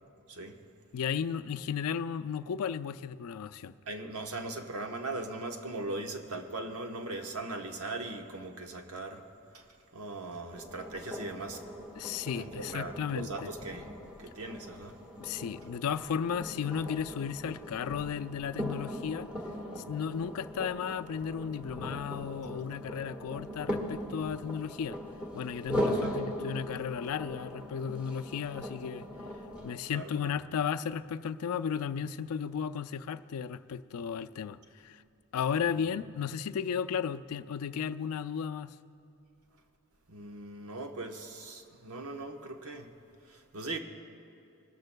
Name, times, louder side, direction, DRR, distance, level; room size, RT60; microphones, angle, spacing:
voice 1, 0.9-3.7 12.0-13.5 15.2-19.3 19.9-25.0 25.3-29.1 29.6-34.6 34.8-35.0 35.3-38.7, left 7 dB, 80° left, 11 dB, 0.4 m, -34 dB
voice 2, 3.9-9.2 9.5-9.7 9.9-11.6 12.3-13.9 14.2-15.0 26.0-26.2 29.9-30.4 35.7-36.1 40.1-42.9 43.2-43.8, right 2 dB, 80° right, 4 dB, 1.1 m, -40 dB
sound 1, 10.5-29.7, equal, 5° right, 1.4 m, -39 dB
21.5 x 13.0 x 2.2 m, 2.7 s
head